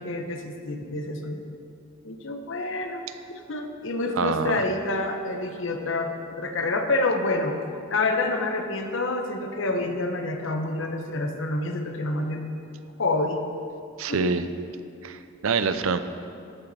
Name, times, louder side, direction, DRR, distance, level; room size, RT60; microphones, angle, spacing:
voice 1, 0.0-1.4 2.0-7.6 7.9-12.4 13.0-13.4 14.1-14.3, left 2 dB, 65° left, 5 dB, 1.0 m, -28 dB
voice 2, 4.2-4.6 14.0-14.5 15.0-16.0, right 5 dB, 85° right, 10 dB, 0.6 m, -25 dB
13.5 x 8.9 x 4.3 m, 2.4 s
head